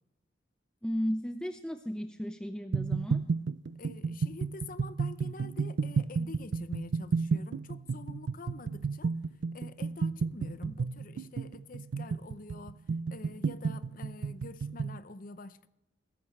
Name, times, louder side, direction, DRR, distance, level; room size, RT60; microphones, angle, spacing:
voice 1, 0.8-3.2, equal, 5° left, 0.5 m, -34 dB
sound 1, 2.7-15.0, right 5 dB, 70° right, 0.4 m, -32 dB
voice 2, 3.8-9.1 9.5-12.8 13.1-15.7, left 3 dB, 45° left, 0.7 m, -46 dB
17.0 x 14.5 x 3.2 m
head